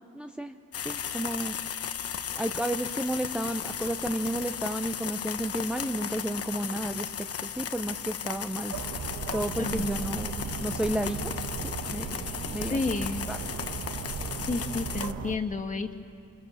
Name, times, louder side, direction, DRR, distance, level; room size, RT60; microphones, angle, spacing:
voice 1, 0.1-0.6 0.8-1.5 2.4-7.1 7.4-8.8 9.3-11.2 11.6-12.8 13.3-13.4, right 1 dB, 5° right, 6 dB, 0.9 m, -32 dB
sound 1, 0.7-15.1, left 8 dB, 50° left, 1.1 m, -36 dB
sound 2, 8.7-15.4, right 6 dB, 70° right, 1.6 m, -36 dB
voice 2, 9.6-10.4 12.7-13.2 14.5-15.9, left 3 dB, 25° left, 4 dB, 2.0 m, -31 dB
27.5 x 25.5 x 7.3 m, 2.5 s
cardioid pair, 90°, 30 cm